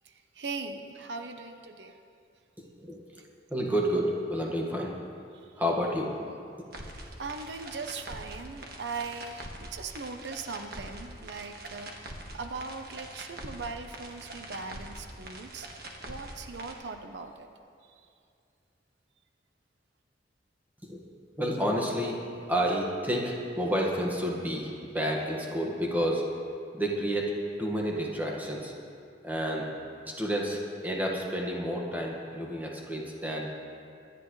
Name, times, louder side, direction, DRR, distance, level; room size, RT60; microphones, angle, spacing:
voice 1, 0.0-2.0 5.3-5.5 7.2-15.7 16.0-17.5 17.8-18.1, right 4 dB, 80° right, 6 dB, 0.8 m, -40 dB
voice 2, 3.5-4.9 5.6-6.3 20.8-21.0 21.4-22.2 22.5-26.2 26.7-28.7 29.2-29.7 30.0-33.5, equal, 10° right, -2 dB, 1.6 m, -30 dB
sound 1, 6.7-16.7, right 1 dB, 60° right, 1.5 m, -44 dB
24.5 x 11.0 x 3.2 m, 2.5 s
head